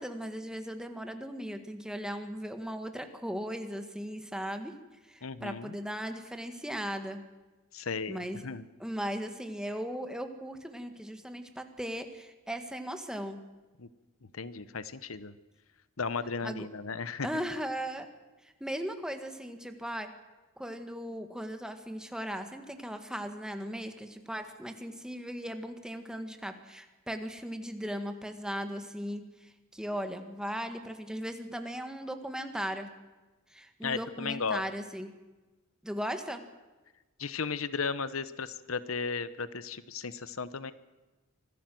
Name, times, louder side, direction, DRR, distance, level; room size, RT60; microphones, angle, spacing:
voice 1, 0.0-4.7 5.1-7.2 8.1-8.4 8.8-13.4 16.4-16.7 17.2-18.1 18.6-20.1 20.6-32.9 33.5-35.1 35.8-36.4, equal, 5° right, 7 dB, 1.7 m, -37 dB
voice 2, 5.2-5.8 7.7-8.6 13.8-13.9 14.3-15.3 16.0-17.3 33.8-34.6 37.2-40.7, left 5 dB, 80° left, 15 dB, 1.0 m, -35 dB
25.0 x 15.0 x 7.8 m, 1.2 s
head